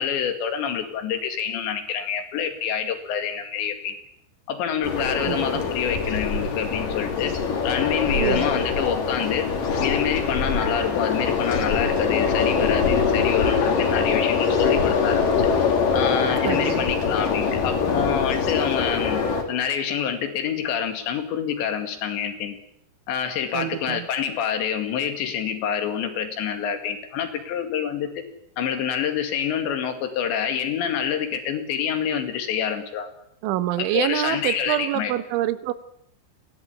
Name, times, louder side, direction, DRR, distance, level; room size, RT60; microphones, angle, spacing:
voice 1, 0.0-4.0 4.5-7.3 7.6-9.5 9.8-15.3 15.9-22.6 23.1-28.1 28.6-33.1 33.8-35.1, left 8 dB, 75° left, 7 dB, 4.4 m, -27 dB
sound 1, 4.8-19.4, left 5 dB, 50° left, 3.9 m, -23 dB
voice 2, 5.3-5.7 8.2-8.5 16.5-16.9 23.5-24.1 33.4-35.7, right 13 dB, 90° right, 12 dB, 3.6 m, -26 dB
23.0 x 17.5 x 8.4 m, 0.71 s
omnidirectional pair, 5.3 m